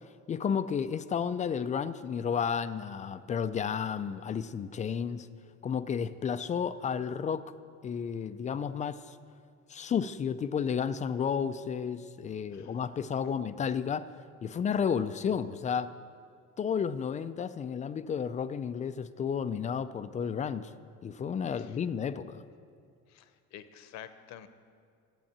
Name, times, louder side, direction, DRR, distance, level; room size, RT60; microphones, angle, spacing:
voice 1, 0.3-5.3 5.6-7.4 7.8-9.2 9.7-14.1 14.4-15.9 16.6-20.7 21.0-22.4, left 7 dB, 25° left, 12 dB, 0.4 m, -32 dB
voice 2, 12.5-13.3 21.5-21.8 23.1-24.5, left 10 dB, 65° left, 11 dB, 0.9 m, -50 dB
12.0 x 8.4 x 8.6 m, 2.3 s
cardioid pair, 130°, 29 cm